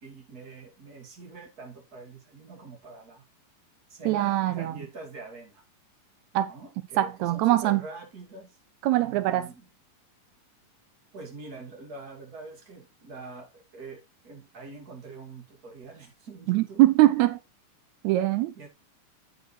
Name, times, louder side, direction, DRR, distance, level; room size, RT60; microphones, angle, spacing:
voice 1, 0.0-3.2 3.9-5.6 6.5-8.6 8.9-9.7 11.1-16.8 18.5-18.7, right 3 dB, 30° right, 2.6 m, -44 dB
voice 2, 4.0-4.7 6.3-6.5 7.0-7.8 8.8-9.5 16.5-17.4 18.0-18.5, right 15 dB, 85° right, 1.6 m, -22 dB
8.6 x 7.6 x 3.2 m
omnidirectional pair, 3.8 m